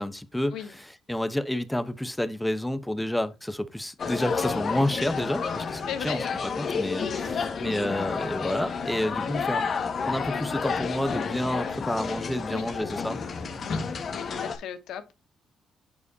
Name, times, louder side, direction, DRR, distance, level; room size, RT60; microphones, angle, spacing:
voice 1, 0.0-9.6 10.1-13.2, left 1 dB, 5° left, 0.9 m, -29 dB
sound 1, 4.0-14.6, left 5 dB, 50° left, 1.6 m, -30 dB
voice 2, 5.9-6.3 12.5-12.7 13.6-13.8 14.1-15.1, left 9 dB, 80° left, 1.5 m, -36 dB
9.5 x 4.8 x 2.7 m
cardioid pair, 90°, 0 cm